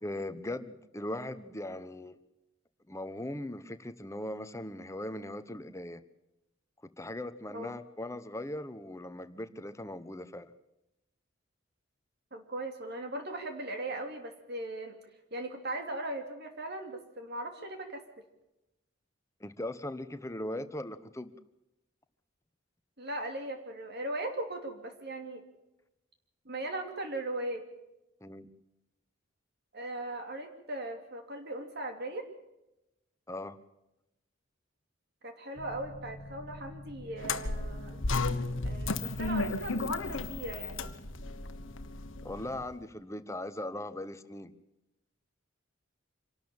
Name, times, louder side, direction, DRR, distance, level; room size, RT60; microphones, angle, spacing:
voice 1, 0.0-2.2 2.9-6.0 6.8-10.5 19.4-21.3 28.2-28.5 33.3-33.6 42.2-44.5, left 1 dB, 15° left, 11 dB, 1.0 m, -39 dB
voice 2, 12.3-15.0 15.3-18.0 23.0-25.4 26.4-27.6 29.7-32.3 35.2-38.0 38.6-40.9, right 1 dB, 55° right, 5 dB, 2.9 m, -38 dB
sound 1, 35.6-42.7, left 1 dB, 60° left, 1.3 m, -48 dB
sound 2, 37.2-42.4, left 3 dB, 75° left, 1.4 m, -33 dB
26.0 x 12.5 x 8.8 m, 0.92 s
head